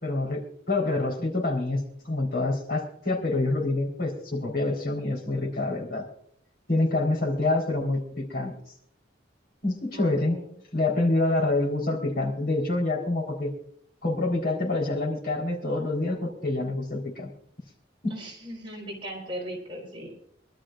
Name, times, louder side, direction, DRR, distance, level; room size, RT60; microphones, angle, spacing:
voice 1, 0.0-6.1 6.7-8.5 9.6-10.4 10.7-13.5 14.0-17.3 18.0-18.1, left 2 dB, 55° left, 0 dB, 4.1 m, -27 dB
voice 2, 9.9-10.5 18.1-20.1, equal, 25° right, -2 dB, 4.4 m, -38 dB
25.0 x 12.5 x 2.5 m, 0.66 s
head